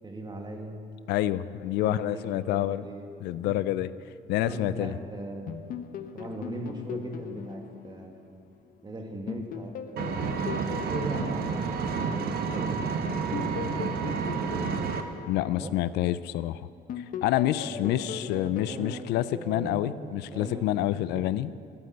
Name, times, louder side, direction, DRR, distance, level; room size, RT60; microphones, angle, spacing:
voice 1, 0.0-0.8 1.8-3.1 3.4-3.6 4.4-5.5 6.1-8.4 8.8-10.4 10.8-12.8 15.4-15.8 17.6-21.2, right 2 dB, 25° right, 2 dB, 1.9 m, -39 dB
voice 2, 1.1-2.8 3.2-3.9 4.3-4.9 15.3-16.6 17.0-21.5, left 13 dB, 85° left, 16 dB, 0.4 m, -28 dB
sound 1, 5.5-8.8 9.3-12.5 13.1-16.4 16.9-20.1, left 8 dB, 55° left, 0.8 m, -40 dB
Engine, 10.0-15.0, right 5 dB, 65° right, 1.1 m, -30 dB
12.5 x 9.5 x 7.9 m, 2.4 s
cardioid pair, 110°, 17 cm